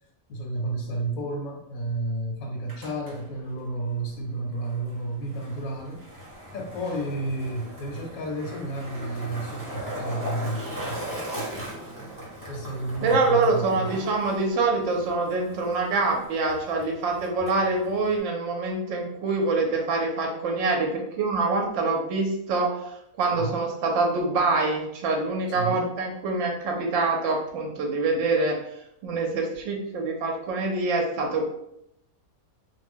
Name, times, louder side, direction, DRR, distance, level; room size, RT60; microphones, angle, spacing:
voice 1, 0.3-6.0 6.5-11.7 12.5-14.0 23.3-23.6 25.5-25.9, right 2 dB, 80° left, 1 dB, 1.1 m, -32 dB
Skateboard, 2.5-18.2, right 1 dB, 20° right, 0.6 m, -39 dB
voice 2, 13.0-28.6 29.0-31.5, right 3 dB, 70° right, 1 dB, 0.9 m, -25 dB
2.5 x 2.1 x 3.4 m, 0.78 s
omnidirectional pair, 1.5 m